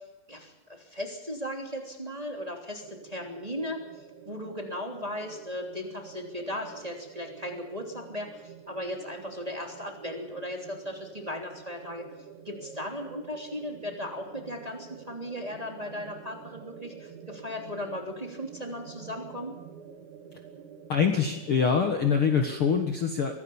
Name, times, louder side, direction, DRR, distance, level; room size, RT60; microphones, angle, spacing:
voice 1, 0.3-3.8 4.3-12.0 12.4-19.5, left 1 dB, 10° right, 2 dB, 2.3 m, -37 dB
sound 1, 2.8-22.6, right 7 dB, 90° right, 4.4 m, -48 dB
voice 2, 20.9-23.3, left 6 dB, 70° left, 5 dB, 1.3 m, -24 dB
24.0 x 17.0 x 7.2 m, 0.97 s
omnidirectional pair, 5.1 m